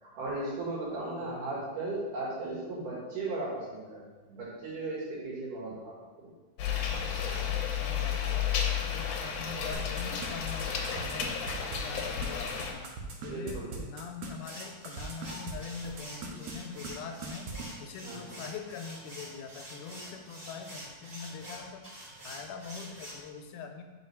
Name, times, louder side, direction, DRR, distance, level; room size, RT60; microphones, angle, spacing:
voice 1, 0.0-6.3 13.3-13.8 18.0-18.3, right 2 dB, 90° right, -5 dB, 3.3 m, -37 dB
voice 2, 1.2-1.7 7.8-11.4 11.8-12.9 13.2-17.5 17.8-21.9 22.2-23.8, left 6 dB, 85° left, 5 dB, 2.2 m, -43 dB
sound 1, 6.6-12.7, left 8 dB, 70° left, 1.7 m, -32 dB
sound 2, 9.7-15.5 15.8-16.6 16.8-16.9 17.2-17.7, right 5 dB, 70° right, 1.8 m, -40 dB
sound 3, 14.4-23.3, equal, 30° right, 1.1 m, -46 dB
5.2 x 4.7 x 5.7 m, 1.3 s
omnidirectional pair, 3.5 m